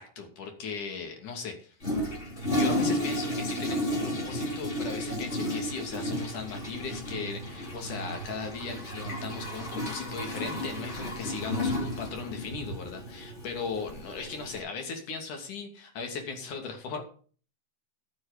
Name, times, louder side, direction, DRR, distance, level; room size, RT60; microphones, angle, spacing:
voice 1, 0.0-1.8 2.5-17.0, left 5 dB, 60° left, 4 dB, 4.1 m, -37 dB
Toilet flush, 1.8-14.6, left 1 dB, 20° left, 3.0 m, -33 dB
13.0 x 8.6 x 5.2 m, 0.41 s
omnidirectional pair, 4.2 m